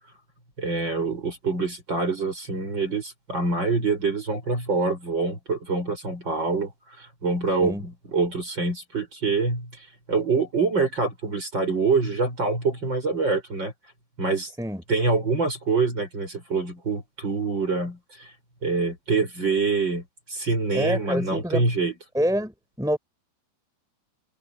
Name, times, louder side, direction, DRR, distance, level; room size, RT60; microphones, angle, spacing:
voice 1, 0.6-6.7 7.0-9.7 10.1-13.7 14.2-14.5 14.9-18.3 18.6-21.9, right 4 dB, 25° right, 7.2 m, -25 dB
voice 2, 20.7-21.6 22.1-23.0, equal, ahead, 5.1 m, -26 dB
omnidirectional pair, 4.8 m